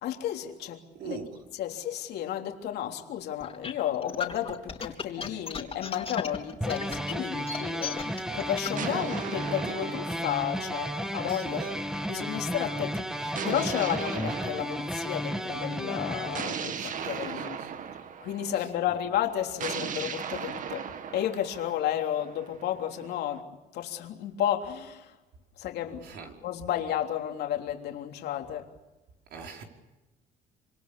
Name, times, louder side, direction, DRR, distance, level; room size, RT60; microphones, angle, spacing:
voice 1, 0.0-1.2 1.6-8.0 8.3-11.6 12.1-17.6 18.2-20.9 21.1-23.5 23.7-25.1 25.6-26.0 26.4-28.7, left 11 dB, 75° left, 3.4 m, -32 dB
voice 2, 0.9-1.4 11.2-11.8 12.7-13.0 16.8-18.0 18.5-19.0 26.0-26.4 29.3-29.6, right 6 dB, 70° right, 5.2 m, -43 dB
sound 1, 3.4-8.8, left 6 dB, 35° left, 3.5 m, -35 dB
sound 2, 6.6-16.4, equal, 5° right, 2.1 m, -33 dB
sound 3, 6.9-8.0 8.8-11.4 13.4-15.5 16.3-18.7 19.6-23.4, right 7 dB, 50° right, 1.8 m, -38 dB
26.5 x 26.0 x 7.0 m
cardioid pair, 110°, 17 cm